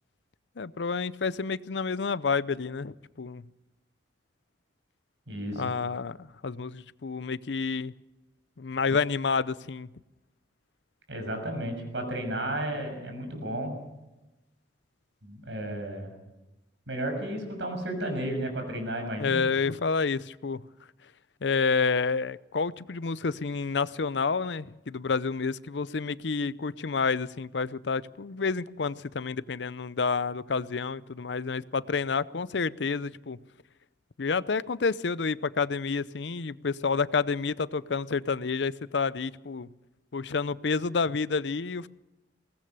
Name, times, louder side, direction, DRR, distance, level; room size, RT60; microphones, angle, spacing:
voice 1, 0.6-3.4 5.5-7.9 8.6-9.9 19.2-20.6 21.4-33.4 34.2-39.7 40.1-41.9, left 5 dB, 75° left, 0.6 m, -29 dB
voice 2, 5.3-5.6 11.1-13.7 15.2-16.1 16.9-19.4, right 1 dB, 85° right, 6.5 m, -33 dB
22.0 x 18.5 x 6.7 m
head